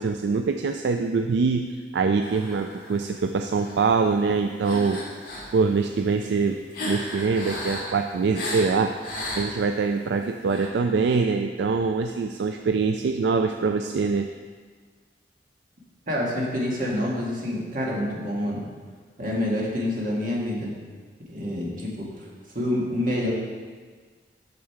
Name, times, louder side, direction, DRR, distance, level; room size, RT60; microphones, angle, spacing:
voice 1, 0.0-1.7 1.9-5.0 5.5-6.6 6.8-14.3, right 4 dB, 75° right, 5 dB, 0.4 m, -24 dB
sound 1, 2.2-3.1 3.6-3.8 4.6-5.5 6.0-9.8 10.4-10.7, left 1 dB, 55° left, 2.0 m, -34 dB
voice 2, 16.1-18.6 19.2-20.7 21.3-22.1 22.5-23.3, left 1 dB, 50° right, -4 dB, 1.7 m, -27 dB
6.9 x 6.5 x 4.6 m, 1.5 s
head